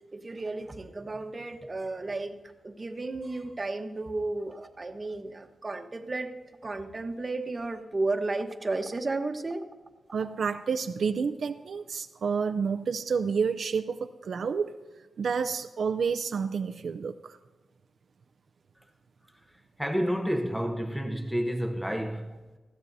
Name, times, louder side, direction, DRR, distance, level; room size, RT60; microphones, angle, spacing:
voice 1, 0.1-2.4 2.6-6.3 6.6-9.6, right 2 dB, 30° right, 1.1 m, -33 dB
voice 2, 10.1-14.8 15.2-17.4, right 5 dB, 70° right, 0.5 m, -29 dB
voice 3, 19.8-22.4, equal, ahead, 0.9 m, -29 dB
20.0 x 15.0 x 2.7 m
wide cardioid pair, 100°, 0 cm